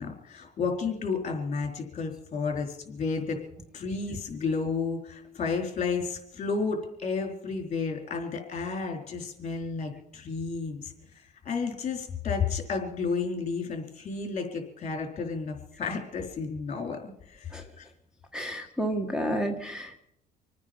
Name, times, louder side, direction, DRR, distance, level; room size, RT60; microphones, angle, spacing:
voice 1, 0.0-3.4 3.7-17.9, left 5 dB, 40° left, 3 dB, 4.1 m, -32 dB
voice 2, 18.3-20.0, equal, 5° right, 6 dB, 1.4 m, -30 dB
26.5 x 9.6 x 5.3 m, 0.75 s
cardioid pair, 110°, 17 cm